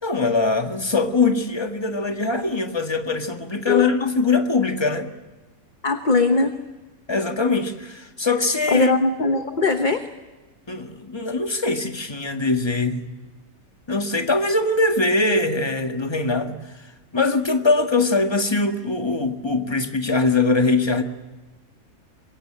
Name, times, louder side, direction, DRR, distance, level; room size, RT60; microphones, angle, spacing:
voice 1, 0.0-5.1 7.1-8.9 10.7-13.0 13.9-16.6 17.1-21.0, left 3 dB, 20° left, 1.6 m, -22 dB
voice 2, 5.8-6.5 8.7-10.1, left 3 dB, 35° left, 1.1 m, -20 dB
25.5 x 22.0 x 9.0 m
omnidirectional pair, 1.5 m